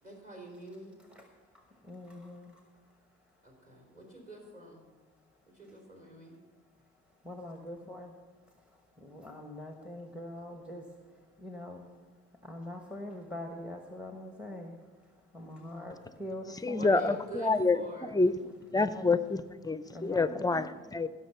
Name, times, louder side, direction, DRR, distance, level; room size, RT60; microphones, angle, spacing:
voice 1, 0.0-0.9 3.4-4.8 5.5-6.3 7.7-7.8 15.5-15.9 16.7-18.2, right 2 dB, 25° right, 0 dB, 3.5 m, -45 dB
voice 2, 1.9-2.5 7.2-8.1 9.0-10.8 11.4-11.9 12.4-14.7 15.3-17.1 18.7-19.1 19.9-20.5, left 1 dB, 5° right, 3 dB, 1.1 m, -43 dB
voice 3, 16.6-18.4 18.7-21.1, left 3 dB, 15° left, 13 dB, 0.5 m, -28 dB
16.0 x 6.5 x 5.7 m, 1.4 s
cardioid pair, 90°, 30 cm